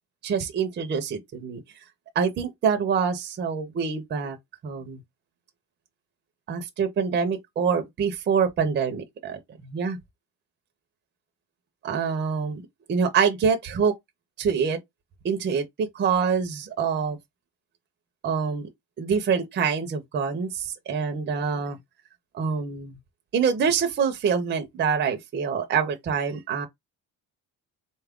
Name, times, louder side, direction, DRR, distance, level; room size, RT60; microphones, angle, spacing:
voice 1, 0.2-1.6 2.2-4.4 4.6-5.0 6.5-10.0 11.8-12.6 12.9-13.9 14.4-14.8 15.2-17.2 18.2-18.7 19.0-21.8 22.3-23.0 23.3-26.7, right 6 dB, 30° right, 0.6 m, -25 dB
4.0 x 2.3 x 3.5 m
cardioid pair, 175°, 33 cm